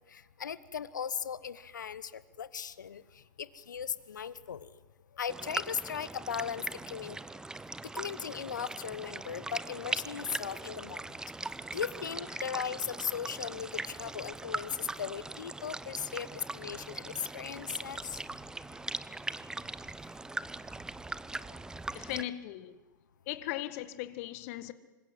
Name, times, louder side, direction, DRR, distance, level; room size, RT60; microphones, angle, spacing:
voice 1, 0.1-2.1 2.4-3.0 3.4-4.7 5.2-6.6 6.9-7.2 7.9-11.0 11.7-18.2, left 7 dB, 70° left, 16 dB, 1.2 m, -37 dB
sound 1, 5.3-22.2, right 2 dB, 5° right, 0.9 m, -40 dB
voice 2, 21.9-22.8 23.3-24.7, left 15 dB, 45° left, 12 dB, 1.8 m, -38 dB
27.0 x 25.0 x 8.0 m, 1.2 s
figure-of-eight pair, 100°, 10 cm